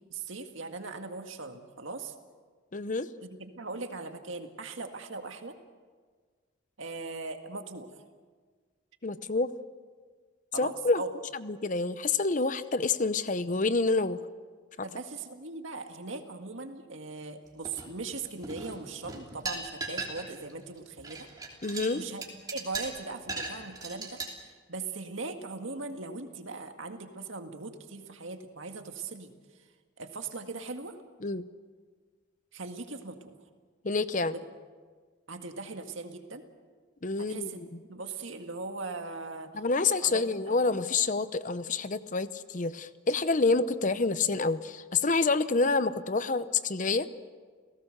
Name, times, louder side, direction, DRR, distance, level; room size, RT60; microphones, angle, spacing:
voice 1, 0.1-2.1 3.3-5.6 6.8-8.0 10.5-11.1 14.8-21.3 21.9-22.2 22.5-24.2 24.7-29.3 30.0-31.0 32.5-33.4 34.3-34.4 35.3-36.4 37.2-37.6 37.9-39.6 40.0-40.2, right 3 dB, 70° right, 5 dB, 1.9 m, -39 dB
voice 2, 2.7-3.1 9.0-9.5 10.6-11.0 11.4-14.2 21.6-22.0 31.2-31.5 33.8-34.3 37.0-37.5 39.5-47.1, left 3 dB, 40° left, 13 dB, 0.7 m, -28 dB
sound 1, 17.6-18.2 18.4-20.5 20.8-24.3, right 3 dB, 20° right, 3.1 m, -37 dB
30.0 x 17.5 x 6.6 m, 1.5 s
head